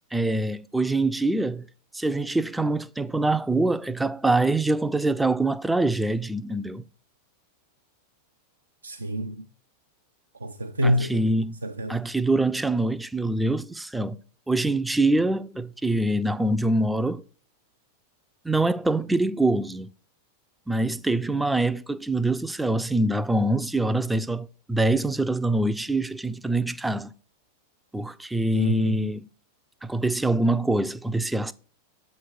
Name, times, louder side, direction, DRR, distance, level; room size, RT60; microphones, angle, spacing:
voice 1, 0.1-1.7 1.9-6.8 10.8-11.6 11.9-14.2 14.5-17.2 18.4-19.9 20.7-27.1 27.9-29.3 29.8-31.5, right 2 dB, 5° right, 0.4 m, -24 dB
voice 2, 8.8-9.5 10.4-11.2 11.6-12.0 28.5-29.1, equal, 80° right, 0.4 m, -27 dB
7.5 x 3.2 x 5.9 m
figure-of-eight pair, 90°, 0 cm